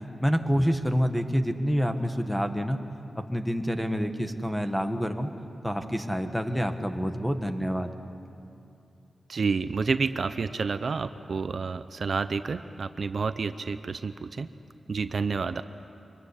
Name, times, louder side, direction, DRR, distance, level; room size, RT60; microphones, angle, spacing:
voice 1, 0.2-2.8 3.1-5.3 5.6-7.9, equal, ahead, 7 dB, 1.5 m, -27 dB
voice 2, 9.3-14.5 14.9-15.6, right 4 dB, 55° right, 11 dB, 0.7 m, -29 dB
25.0 x 22.5 x 10.0 m, 2.7 s
wide cardioid pair, 115°, 0 cm